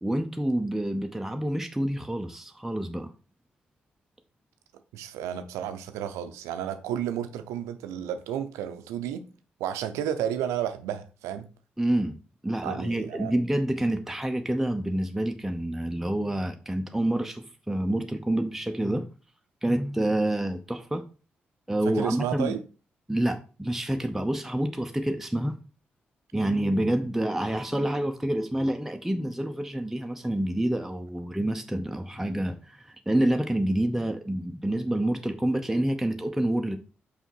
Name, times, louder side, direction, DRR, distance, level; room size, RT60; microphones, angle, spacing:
voice 1, 0.0-3.1 11.8-12.2 12.4-19.1 19.6-21.1 21.7-22.6 23.1-25.6 26.3-36.8, right 1 dB, 5° right, 0.7 m, -28 dB
voice 2, 4.9-9.2 9.6-11.5 12.6-13.3 21.8-22.6, right 10 dB, 85° right, 0.6 m, -32 dB
5.6 x 4.1 x 4.5 m
hypercardioid pair, 40°, 5 cm